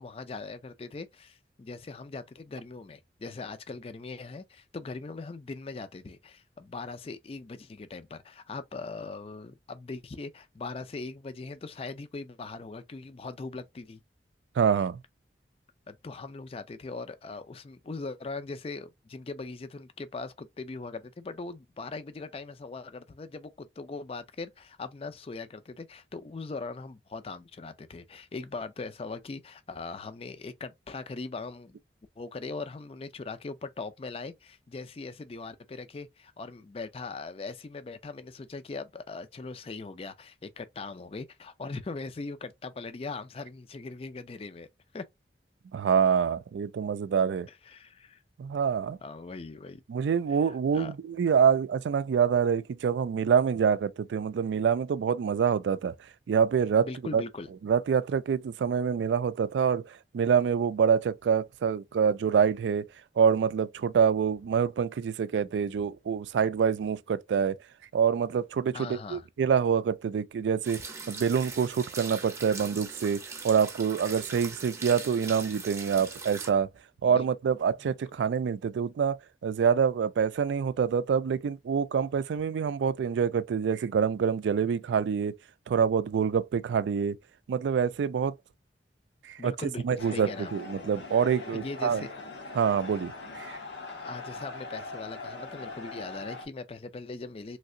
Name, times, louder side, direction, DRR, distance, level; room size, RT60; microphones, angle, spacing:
voice 1, 0.0-14.0 15.9-31.8 32.2-44.7 44.9-45.0 47.5-48.2 49.0-49.8 50.3-50.9 56.7-57.5 68.7-69.3 77.0-77.3 77.8-77.9 89.4-90.5 91.5-92.1 93.9-97.6, left 3 dB, 35° left, 0.4 m, -40 dB
voice 2, 14.6-15.0 45.7-47.5 48.4-49.0 49.9-55.9 56.3-57.2 57.6-62.9 63.2-67.6 67.9-70.8 71.1-76.7 77.0-85.4 85.7-87.2 87.5-88.3 89.3-89.5 89.8-92.1 92.6-93.6, right 7 dB, 85° right, 0.3 m, -26 dB
sound 1, 70.6-76.5, right 4 dB, 15° right, 0.6 m, -41 dB
sound 2, 90.0-96.5, left 3 dB, 90° left, 1.1 m, -41 dB
3.2 x 2.8 x 2.6 m
head